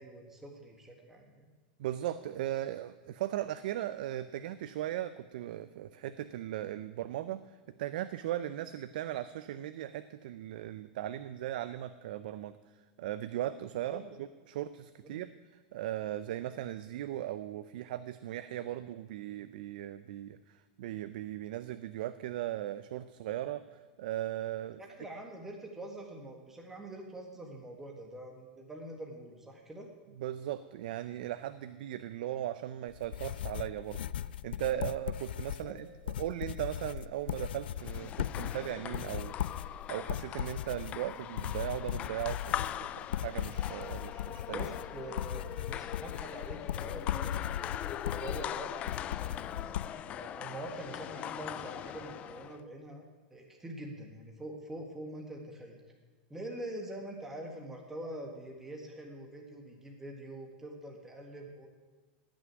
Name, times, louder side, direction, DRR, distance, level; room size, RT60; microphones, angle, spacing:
voice 1, 0.0-1.5 13.8-14.1 15.0-15.2 24.8-29.9 35.6-35.8 44.5-53.0 53.3-55.8 56.3-61.7, right 1 dB, 5° right, 1 dB, 1.7 m, -45 dB
voice 2, 1.8-7.4 7.8-12.6 13.0-15.3 15.7-24.8 30.2-34.0 34.4-39.3 39.6-44.6, right 13 dB, 65° right, 12 dB, 0.6 m, -38 dB
sound 1, 32.9-49.9, left 11 dB, 90° left, 0.4 m, -38 dB
sound 2, 37.8-52.6, left 11 dB, 25° left, 0.4 m, -41 dB
17.0 x 6.3 x 9.4 m, 1.3 s
supercardioid pair, 155°, 5 cm